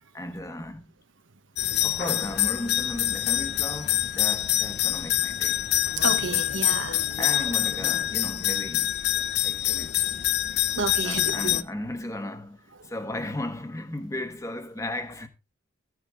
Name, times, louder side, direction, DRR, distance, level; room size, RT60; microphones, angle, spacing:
voice 1, 0.1-0.9 1.8-5.7 7.1-9.0 9.4-10.2 11.0-15.3, left 1 dB, 15° left, 1.3 m, -35 dB
sound 1, 1.6-11.6, left 13 dB, 55° left, 0.5 m, -26 dB
voice 2, 6.0-7.0 10.8-11.6, right 4 dB, 80° right, 1.1 m, -30 dB
15.0 x 9.7 x 3.6 m
head